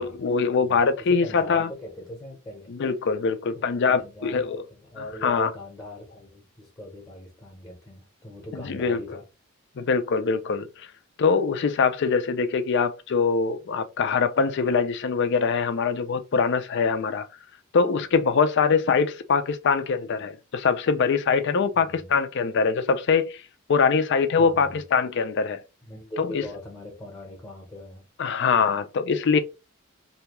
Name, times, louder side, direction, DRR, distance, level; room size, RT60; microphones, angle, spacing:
voice 1, 0.0-1.7 2.7-4.6 5.2-5.5 8.5-9.2 9.8-10.9 11.2-17.3 17.7-23.4 23.7-25.6 26.2-26.4 28.2-29.4, left 5 dB, 55° left, 0.4 m, -23 dB
voice 2, 0.6-2.7 3.5-3.6 4.0-9.2 21.7-22.1 24.4-24.8 25.8-28.0, equal, 15° left, 0.8 m, -41 dB
2.7 x 2.2 x 2.9 m
head